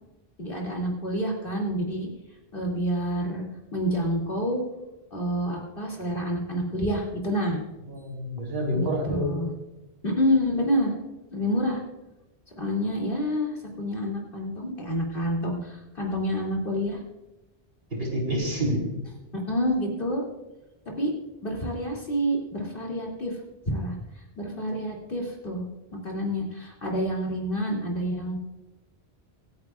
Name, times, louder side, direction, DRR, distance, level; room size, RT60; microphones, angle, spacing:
voice 1, 0.4-2.1 2.5-3.4 3.7-4.6 5.1-7.6 8.7-9.5 10.0-11.0 11.3-11.8 12.6-17.0 19.5-20.2 21.0-21.1 21.4-23.4 23.7-24.0 24.4-25.6 26.0-28.4, equal, 55° left, -2 dB, 2.9 m, -28 dB
voice 2, 7.9-9.3 18.0-18.8, equal, 65° right, -1 dB, 3.6 m, -28 dB
25.5 x 9.5 x 2.4 m, 1.0 s
omnidirectional pair, 1.1 m